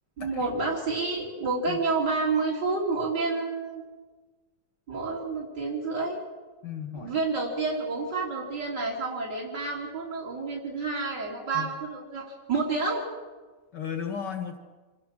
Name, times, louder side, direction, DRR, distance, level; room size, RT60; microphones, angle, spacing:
voice 1, 0.2-3.8 4.9-6.2 6.9-13.1, right 3 dB, 85° right, -4 dB, 4.0 m, -29 dB
voice 2, 6.6-7.2 11.5-11.7 13.7-14.6, left 7 dB, 85° left, 5 dB, 2.5 m, -35 dB
26.5 x 23.0 x 6.5 m, 1.3 s
omnidirectional pair, 1.8 m